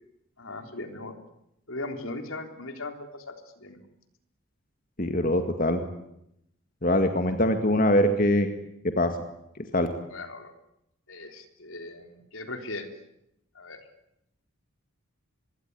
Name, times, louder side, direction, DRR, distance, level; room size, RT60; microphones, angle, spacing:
voice 1, 0.4-1.2 1.7-3.8 10.1-10.5 11.1-12.9 13.6-13.8, left 2 dB, 75° left, 6 dB, 3.8 m, -38 dB
voice 2, 5.0-5.8 6.8-8.5 9.0-9.1 9.7-9.9, left 1 dB, 40° left, 6 dB, 2.1 m, -23 dB
25.0 x 22.0 x 9.7 m, 0.80 s
head